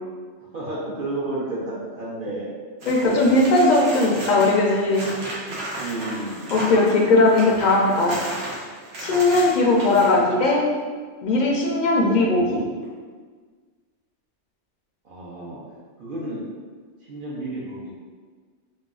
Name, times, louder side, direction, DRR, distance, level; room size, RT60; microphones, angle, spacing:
voice 1, 0.5-2.5 3.0-3.3 5.7-6.6 8.0-8.2 9.4-9.7 15.0-15.6 16.0-16.4 17.0-17.9, right 2 dB, 55° right, -7 dB, 0.7 m, -32 dB
sound 1, 2.8-10.2 12.8-12.9, right 1 dB, 85° right, 1.1 m, -34 dB
voice 2, 2.9-5.1 6.5-8.2 9.0-10.7 11.2-12.6, left 2 dB, 60° left, -2 dB, 0.5 m, -18 dB
4.2 x 2.3 x 2.3 m, 1.5 s
omnidirectional pair, 1.2 m